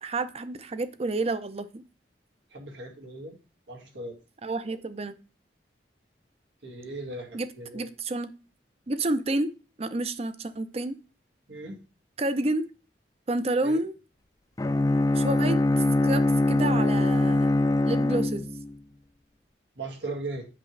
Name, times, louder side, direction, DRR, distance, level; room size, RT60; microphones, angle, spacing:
voice 1, 0.0-1.8 4.4-5.1 7.3-7.5 7.7-8.3 8.9-9.5 9.8-11.0 12.2-12.6 13.3-13.9 15.1-15.6 16.0-17.5 17.8-18.5, right 2 dB, 35° right, 12 dB, 0.5 m, -29 dB
voice 2, 2.5-3.4 3.7-4.2 6.6-7.9 11.5-11.8 13.6-13.8 19.8-20.5, right 2 dB, 85° right, 1 dB, 2.0 m, -38 dB
Bowed string instrument, 14.6-18.8, left 2 dB, 20° left, 0.4 m, -23 dB
8.1 x 6.4 x 3.2 m, 0.33 s
head